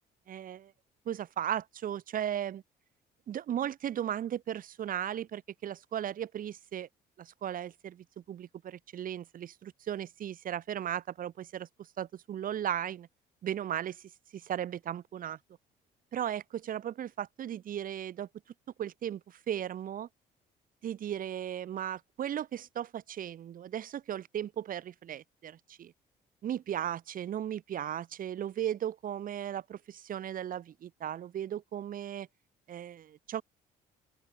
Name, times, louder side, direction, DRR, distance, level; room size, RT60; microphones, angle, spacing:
voice 1, 0.3-0.7 1.1-2.6 3.3-6.9 7.2-11.7 12.0-13.1 13.4-14.0 14.3-15.4 16.1-18.3 18.8-20.1 20.8-25.9 26.4-32.3 32.7-33.4, right 10 dB, 55° right, 4.0 m, -36 dB
open air
cardioid pair, 110°, 17 cm